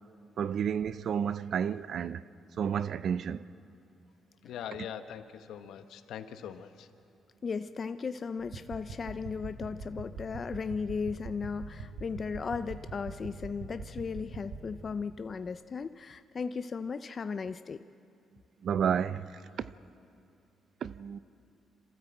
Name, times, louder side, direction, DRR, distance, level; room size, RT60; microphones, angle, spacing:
voice 1, 0.4-2.2 2.6-3.5 18.6-19.7 20.8-21.2, right 8 dB, 60° right, 0.5 m, -31 dB
voice 2, 4.4-6.9, left 9 dB, 80° left, 1.0 m, -42 dB
voice 3, 7.4-17.8, left 5 dB, 40° left, 0.5 m, -36 dB
sound 1, 8.4-14.7, right 3 dB, 80° right, 3.7 m, -44 dB
27.0 x 13.5 x 7.8 m
cardioid pair, 90°, 0 cm